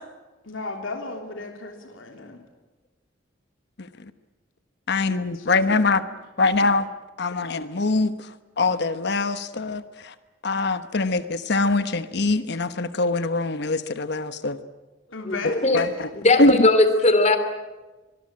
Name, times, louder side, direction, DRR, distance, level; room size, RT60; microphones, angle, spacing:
voice 1, 0.4-2.4 5.1-6.7 10.9-11.1 15.1-15.8, left 3 dB, 90° left, 3 dB, 3.3 m, -36 dB
voice 2, 4.9-6.0 6.4-6.9 7.2-8.1 8.6-10.1 10.4-14.6 15.7-15.9 16.4-16.7, left 3 dB, 60° left, 11 dB, 1.2 m, -23 dB
voice 3, 15.3-15.8 16.2-17.4, left 2 dB, 35° left, 10 dB, 3.1 m, -18 dB
24.5 x 21.5 x 8.7 m, 1.2 s
head